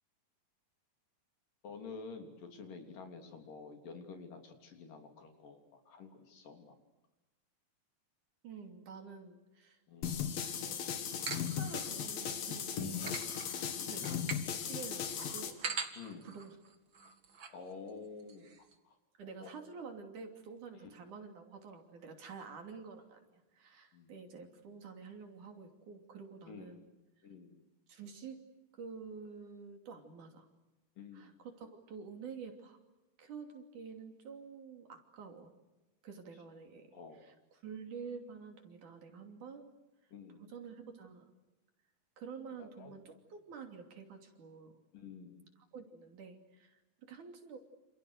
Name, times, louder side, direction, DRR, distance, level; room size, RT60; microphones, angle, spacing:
voice 1, 1.6-6.7 9.9-10.2 13.5-14.1 15.9-16.3 17.5-18.5 18.8-19.0 19.4-19.5 20.7-21.0 23.9-24.1 26.5-26.9 27.2-27.6 31.0-31.4 36.9-37.3 40.1-40.5 42.8-43.0 44.9-45.5, left 4 dB, 70° left, 4 dB, 4.9 m, -50 dB
voice 2, 8.4-9.8 10.4-13.0 13.9-15.6 16.2-16.6 19.2-26.9 27.9-28.4 28.7-30.5 31.1-32.8 33.2-35.5 36.0-36.9 37.2-37.3 37.6-39.7 40.4-41.3 42.2-44.8 45.7-47.6, right 5 dB, 60° right, 5 dB, 4.3 m, -49 dB
sound 1, 10.0-15.5, left 8 dB, 85° left, 4.0 m, -37 dB
sound 2, 11.1-12.4 12.8-17.6 17.9-18.0 18.2-18.7, right 5 dB, 40° right, 2.3 m, -44 dB
29.0 x 28.0 x 6.6 m, 1.0 s
omnidirectional pair, 4.0 m